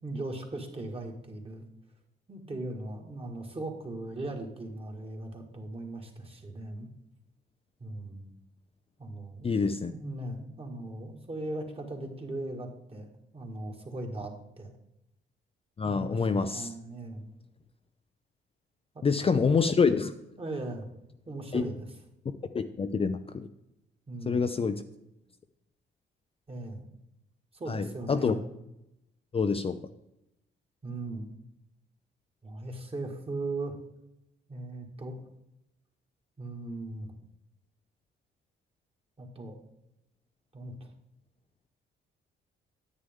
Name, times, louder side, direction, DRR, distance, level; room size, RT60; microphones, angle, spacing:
voice 1, 0.0-1.6 2.3-6.9 7.8-8.3 9.0-9.5 9.9-14.7 15.8-17.3 18.9-19.4 20.4-20.9 21.3-21.9 24.1-24.5 26.5-26.9 27.5-28.4 30.8-31.3 32.4-33.8 34.5-35.2 36.4-37.1 39.2-39.6 40.5-40.9, right 2 dB, 30° right, 2 dB, 2.0 m, -38 dB
voice 2, 9.4-9.9 15.8-16.7 19.0-20.1 21.5-21.6 22.5-23.5 24.3-24.8 27.7-28.3 29.3-29.8, left 5 dB, 30° left, 8 dB, 0.5 m, -26 dB
9.8 x 8.5 x 3.7 m, 0.86 s
cardioid pair, 90°, 20 cm